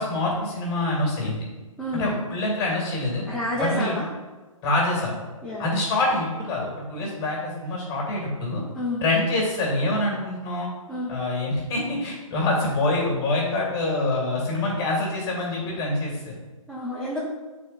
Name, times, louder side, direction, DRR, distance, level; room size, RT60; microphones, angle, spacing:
voice 1, 0.0-1.4 1.9-3.2 3.6-4.0 4.6-5.2 5.6-8.6 9.0-10.7 11.1-16.3, left 2 dB, 20° left, -2 dB, 2.3 m, -25 dB
voice 2, 1.8-2.2 3.3-4.1 5.4-5.7 8.7-9.0 10.9-11.1 16.7-17.2, left 1 dB, ahead, -10 dB, 0.9 m, -29 dB
8.3 x 4.3 x 4.1 m, 1.2 s
figure-of-eight pair, 135°, 18 cm